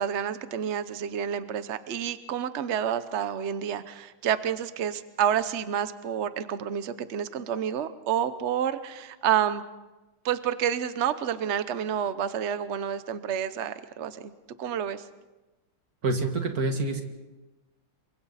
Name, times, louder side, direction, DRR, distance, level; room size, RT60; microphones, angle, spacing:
voice 1, 0.0-9.6 10.2-14.3 14.6-15.0, right 9 dB, 75° right, 12 dB, 0.6 m, -29 dB
voice 2, 16.0-17.0, right 2 dB, 45° right, 4 dB, 2.4 m, -27 dB
28.0 x 24.0 x 4.2 m, 1.1 s
omnidirectional pair, 2.4 m